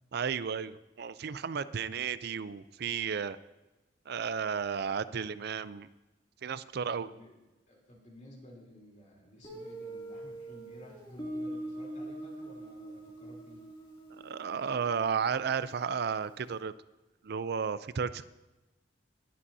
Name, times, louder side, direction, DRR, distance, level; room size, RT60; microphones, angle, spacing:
voice 1, 0.1-3.4 4.1-5.9 6.4-7.1 14.1-16.7 17.2-18.2, right 6 dB, 60° right, 15 dB, 0.5 m, -33 dB
voice 2, 6.8-7.4 7.7-13.6, equal, 45° left, -2 dB, 3.4 m, -53 dB
Guitar, 9.4-16.1, right 1 dB, 25° left, 2.7 m, -43 dB
20.5 x 10.0 x 2.8 m, 1.1 s
head